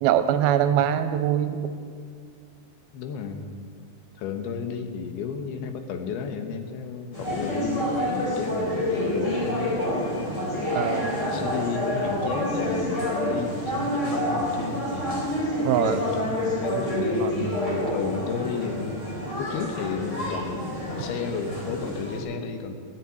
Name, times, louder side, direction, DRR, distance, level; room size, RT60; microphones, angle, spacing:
voice 1, 0.0-1.6 10.7-11.1 15.6-16.0 17.2-17.3, right 10 dB, 80° right, 10 dB, 2.4 m, -23 dB
voice 2, 2.9-3.4 4.2-10.5 11.1-15.3 15.8-22.7, left 5 dB, 75° left, 7 dB, 2.9 m, -33 dB
sound 1, 7.1-22.2, left 1 dB, 25° left, 3.8 m, -28 dB
14.5 x 8.5 x 9.3 m, 2.3 s
omnidirectional pair, 4.6 m